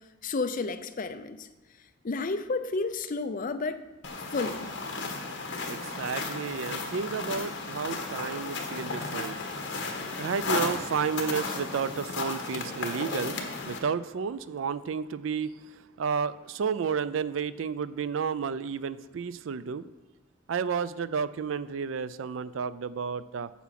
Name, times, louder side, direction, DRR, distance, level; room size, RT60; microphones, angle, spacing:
voice 1, 0.2-1.5 2.0-3.8 4.3-4.7, left 3 dB, 45° left, 10 dB, 0.6 m, -31 dB
sound 1, 4.0-13.8, left 3 dB, 60° left, 1.4 m, -34 dB
voice 2, 5.1-19.8 20.5-23.5, right 6 dB, 75° right, 16 dB, 0.4 m, -32 dB
8.3 x 7.2 x 5.9 m, 1.1 s
head